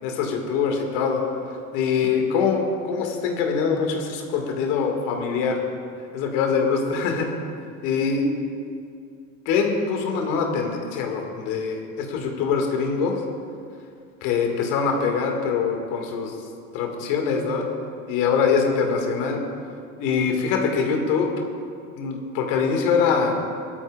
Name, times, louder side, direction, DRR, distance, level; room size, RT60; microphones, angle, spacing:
voice 1, 0.0-5.6 6.1-7.3 7.8-8.3 9.5-13.2 14.2-16.4 16.7-17.7 18.1-19.4 20.0-21.3 22.0-23.4, left 5 dB, 50° left, 2 dB, 2.1 m, -23 dB
22.0 x 12.5 x 2.5 m, 2.4 s
figure-of-eight pair, 70°, 40 cm